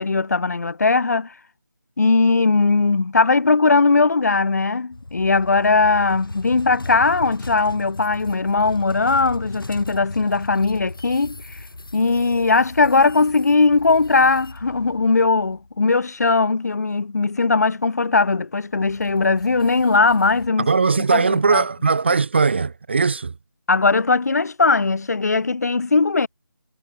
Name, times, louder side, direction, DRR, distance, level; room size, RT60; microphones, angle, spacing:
voice 1, 0.0-1.3 2.0-11.6 11.9-20.7 21.0-21.6 23.7-26.3, left 4 dB, 50° left, 2.4 m, -19 dB
sound 1, 4.9-15.8 18.7-20.5, left 2 dB, 80° left, 4.3 m, -37 dB
voice 2, 20.6-23.3, right 4 dB, 30° right, 0.7 m, -19 dB
figure-of-eight pair, 170°, 11 cm